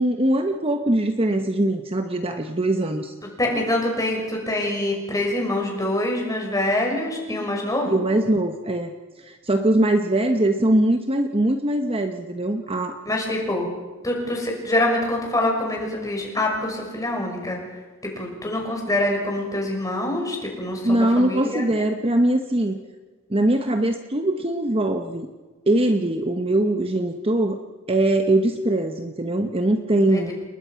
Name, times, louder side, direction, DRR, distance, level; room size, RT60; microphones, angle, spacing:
voice 1, 0.0-3.1 7.8-8.9 9.2-13.0 20.8-22.8 23.3-25.3 25.7-27.6 27.9-30.3, right 1 dB, 25° right, 6 dB, 1.0 m, -22 dB
voice 2, 3.4-8.0 13.1-13.7 14.0-17.6 18.0-21.6 30.1-30.3, left 1 dB, 15° left, 0 dB, 5.8 m, -25 dB
29.5 x 20.5 x 5.8 m, 1.3 s
head